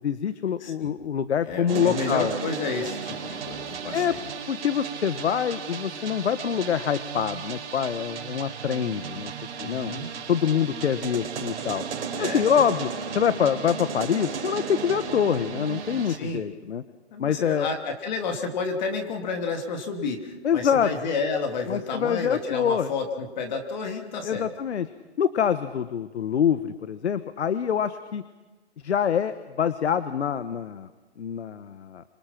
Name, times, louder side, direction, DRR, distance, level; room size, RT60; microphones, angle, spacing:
voice 1, 0.0-2.3 3.9-4.1 4.5-9.3 9.6-9.9 10.3-11.8 12.2-12.9 13.1-16.8 17.2-17.7 20.4-20.9 21.7-22.9 24.2-24.9 25.2-28.2 28.8-30.9 31.2-32.0, left 8 dB, 70° left, 13 dB, 1.3 m, -25 dB
voice 2, 0.6-0.9 1.5-4.2 9.6-10.1 12.2-12.4 16.1-16.4 17.1-24.5, left 4 dB, 40° left, 4 dB, 3.1 m, -31 dB
sound 1, 1.7-16.2, right 6 dB, 55° right, 4.3 m, -34 dB
26.0 x 23.5 x 6.0 m, 1.2 s
hypercardioid pair, 160°, 34 cm